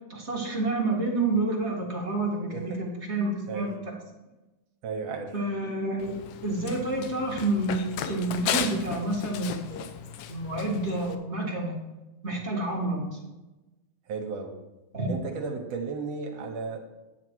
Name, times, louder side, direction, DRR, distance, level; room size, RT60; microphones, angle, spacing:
voice 1, 0.1-3.9 5.3-7.8 8.0-9.8 10.3-11.8 12.2-13.2 14.9-15.1, right 2 dB, 30° right, -3 dB, 1.5 m, -29 dB
voice 2, 4.8-5.3 14.1-14.6 15.1-16.8, right 4 dB, 65° right, 3 dB, 2.0 m, -34 dB
Run, 6.0-11.2, left 9 dB, 90° left, 2.2 m, -35 dB
10.5 x 7.4 x 4.6 m, 1.1 s
omnidirectional pair, 3.5 m